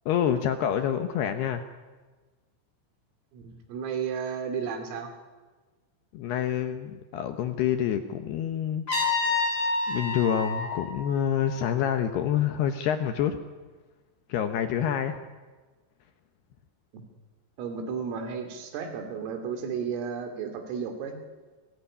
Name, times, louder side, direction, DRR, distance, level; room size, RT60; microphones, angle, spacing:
voice 1, 0.1-1.7 6.1-9.1 9.9-13.4 14.3-15.2, left 9 dB, 70° left, 8 dB, 2.6 m, -27 dB
voice 2, 3.3-5.1 16.9-17.0 17.6-21.2, right 6 dB, 80° right, 6 dB, 5.5 m, -33 dB
Trumpet, 8.9-11.8, left 3 dB, 20° left, 5.6 m, -29 dB
28.5 x 19.0 x 9.8 m, 1.3 s
omnidirectional pair, 5.9 m